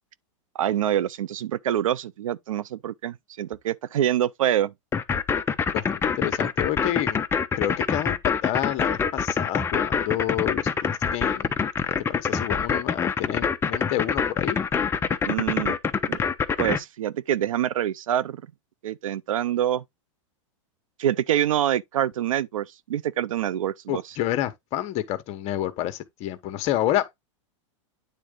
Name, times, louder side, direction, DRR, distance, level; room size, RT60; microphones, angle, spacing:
voice 1, 0.5-4.7 15.2-15.7 16.1-16.2 16.6-18.4 18.8-19.8 21.0-24.0, right 11 dB, 90° right, 0.6 m, -26 dB
sound 1, 4.9-16.8, left 6 dB, 15° left, 0.8 m, -25 dB
voice 2, 5.7-7.2 7.6-11.6 12.1-14.6 23.9-27.2, left 13 dB, 40° left, 1.2 m, -29 dB
9.5 x 3.7 x 3.8 m
hypercardioid pair, 130°, 17 cm